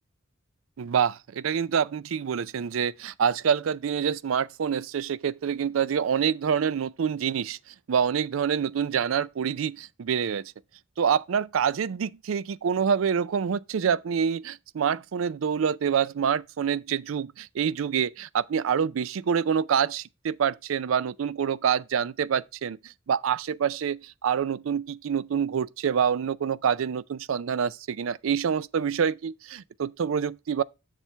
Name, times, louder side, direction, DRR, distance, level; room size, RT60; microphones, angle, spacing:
voice 1, 0.8-10.5 11.0-30.6, right 7 dB, 85° right, 0.4 m, -26 dB
7.3 x 6.9 x 3.3 m
head